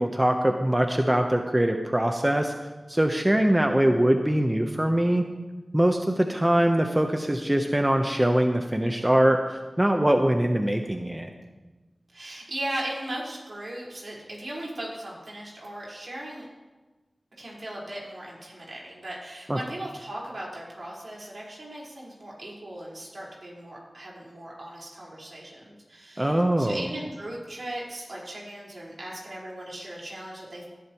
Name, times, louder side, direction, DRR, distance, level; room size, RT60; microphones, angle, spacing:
voice 1, 0.0-2.5 2.9-5.2 5.7-11.3 19.5-19.6 26.2-26.9, right 1 dB, 20° right, 4 dB, 0.9 m, -23 dB
voice 2, 12.1-16.5 17.4-30.7, right 1 dB, 70° right, -5 dB, 4.6 m, -38 dB
18.5 x 11.0 x 3.1 m, 1.2 s
cardioid pair, 45°, 0 cm